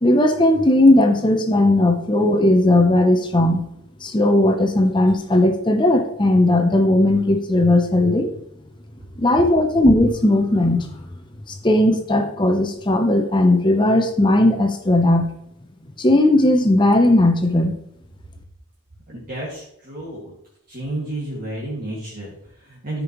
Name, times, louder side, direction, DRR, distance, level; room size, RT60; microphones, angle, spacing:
voice 1, 0.0-3.6 4.0-8.3 9.2-10.8 11.6-15.3 16.0-17.8, left 1 dB, 20° left, 5 dB, 0.7 m, -17 dB
voice 2, 19.1-20.3 20.7-23.0, right 1 dB, 40° right, -6 dB, 2.0 m, -31 dB
13.0 x 5.2 x 3.0 m, 0.77 s
head